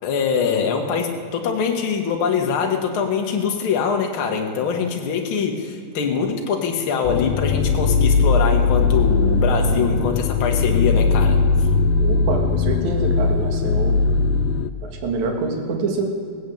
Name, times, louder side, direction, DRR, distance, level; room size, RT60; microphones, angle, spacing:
voice 1, 0.0-11.4, left 6 dB, 50° left, 2 dB, 1.7 m, -23 dB
sound 1, 7.0-14.7, left 4 dB, 90° left, 2.3 m, -19 dB
voice 2, 12.0-14.0 14.8-16.0, right 3 dB, 60° right, 2 dB, 2.9 m, -26 dB
18.0 x 8.0 x 8.6 m, 2.3 s
omnidirectional pair, 4.0 m